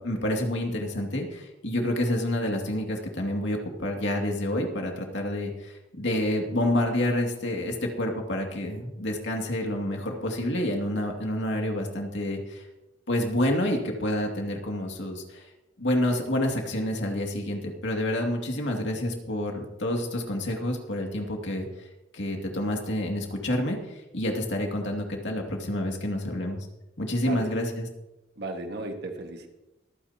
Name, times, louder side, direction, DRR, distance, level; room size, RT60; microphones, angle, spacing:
voice 1, 0.0-12.6 13.1-15.5 15.8-21.7 22.1-26.7 27.0-27.9, left 1 dB, 70° left, 1 dB, 2.4 m, -28 dB
voice 2, 28.4-29.5, right 2 dB, 60° right, 4 dB, 1.8 m, -35 dB
24.0 x 9.3 x 2.9 m, 0.99 s
head